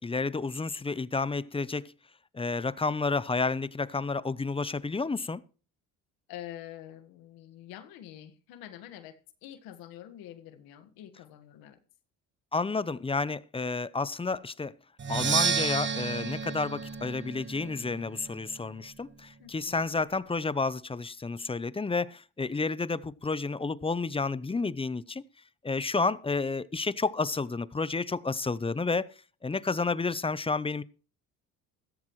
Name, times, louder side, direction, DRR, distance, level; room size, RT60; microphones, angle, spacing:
voice 1, 0.0-1.9 2.3-5.4 12.5-14.7 15.1-25.2 25.6-29.1 29.4-30.8, left 4 dB, 15° left, 0.7 m, -30 dB
voice 2, 6.3-11.8 19.4-19.8, left 12 dB, 85° left, 1.7 m, -46 dB
Percussion, 15.0-18.8, right 6 dB, 30° right, 1.2 m, -31 dB
15.0 x 14.0 x 3.2 m
supercardioid pair, 85°, 35 cm